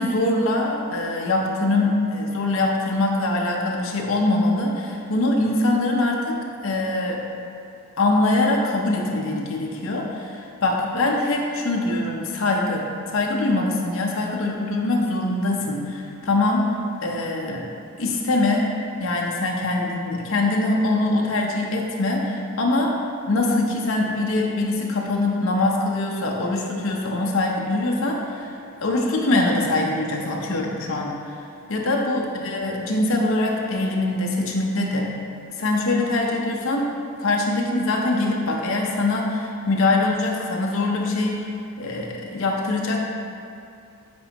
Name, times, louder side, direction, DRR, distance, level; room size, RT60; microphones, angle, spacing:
voice 1, 0.0-6.4 6.6-7.2 8.0-17.7 18.0-18.7 19.0-22.9 23.3-28.5 28.8-31.4 31.7-35.1 35.6-36.9 37.2-43.0, left 2 dB, 70° left, -1 dB, 0.7 m, -23 dB
7.5 x 4.3 x 2.9 m, 2.5 s
head